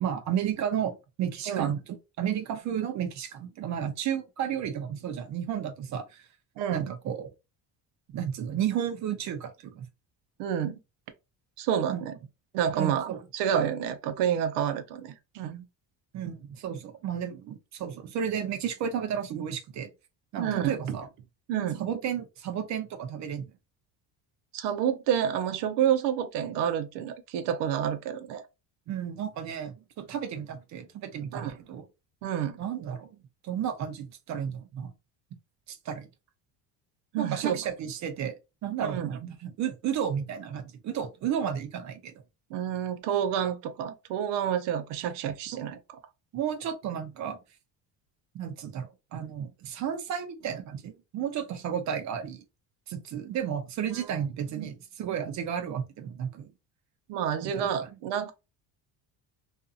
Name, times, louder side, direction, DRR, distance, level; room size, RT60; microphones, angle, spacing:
voice 1, 0.0-1.8 2.2-6.3 6.7-7.3 8.1-9.9 11.9-12.0 12.7-13.2 16.1-19.9 20.3-21.1 21.8-23.5 28.9-31.8 32.6-33.2 33.4-34.9 35.7-36.1 37.2-38.4 38.6-42.1 45.5-45.6 46.3-47.4 48.3-52.4 52.9-56.5 57.4-57.9, right 8 dB, 45° right, 0.6 m, -33 dB
voice 2, 6.6-6.9 10.4-10.8 11.6-12.1 12.5-15.6 20.4-21.0 21.5-21.8 24.5-28.4 31.3-31.6 32.2-32.6 37.1-37.6 38.8-39.2 42.5-45.8 53.9-54.0 54.5-54.7 57.1-58.3, right 9 dB, 85° right, 0.7 m, -29 dB
2.6 x 2.6 x 2.3 m
cardioid pair, 175°, 40 cm